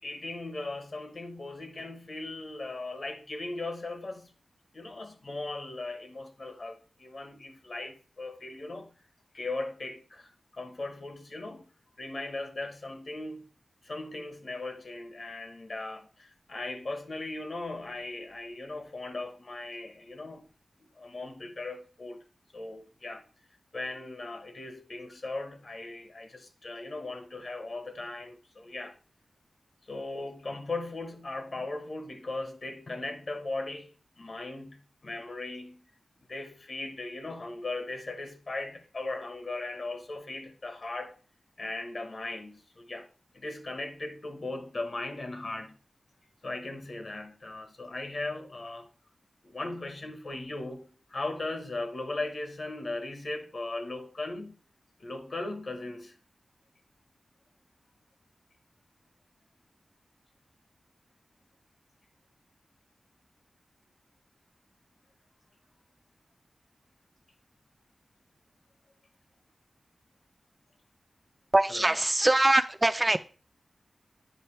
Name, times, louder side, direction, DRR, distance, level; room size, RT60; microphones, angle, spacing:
voice 1, 0.0-4.3 4.7-8.9 9.3-11.7 12.0-13.5 13.8-20.4 20.9-22.3 22.5-23.2 23.7-29.0 29.9-35.9 36.3-41.2 41.6-43.1 43.3-45.8 46.4-48.9 49.4-54.6 55.0-56.2 71.7-71.9, left 2 dB, 55° left, 1.2 m, -38 dB
voice 2, 71.5-73.2, right 1 dB, 20° right, 0.3 m, -23 dB
9.2 x 5.3 x 3.3 m
wide cardioid pair, 95°, 0 cm